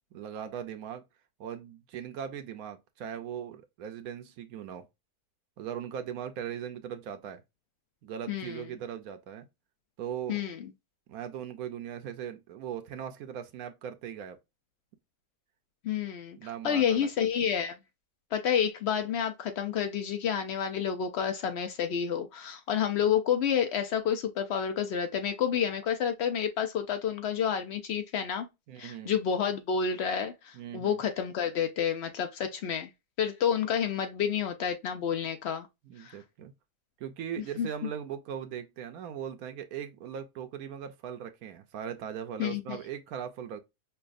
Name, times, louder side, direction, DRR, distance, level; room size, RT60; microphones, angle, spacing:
voice 1, 0.1-1.0 1.4-4.9 5.6-7.4 8.0-9.5 10.0-10.4 11.1-14.4 16.4-17.3 28.7-29.1 30.5-31.0 35.9-36.5 37.0-43.6, right 9 dB, 70° right, 1.0 m, -39 dB
voice 2, 8.3-8.6 10.3-10.7 15.8-16.4 16.6-17.7 18.3-28.5 28.8-32.9 33.2-35.7 36.0-36.2 37.6-37.7 42.4-42.8, left 8 dB, 90° left, 0.5 m, -29 dB
5.6 x 2.3 x 2.5 m
omnidirectional pair, 1.8 m